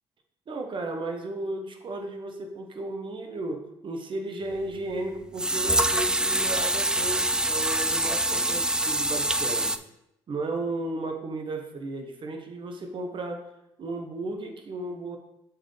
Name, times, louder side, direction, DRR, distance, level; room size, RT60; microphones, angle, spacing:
voice 1, 0.5-9.8 10.3-13.5 13.8-15.2, right 2 dB, 45° right, 4 dB, 1.2 m, -34 dB
sound 1, 4.5-4.6 5.4-9.8, right 1 dB, 5° right, 0.4 m, -25 dB
7.5 x 4.7 x 3.4 m, 0.83 s
hypercardioid pair, 60°, 12 cm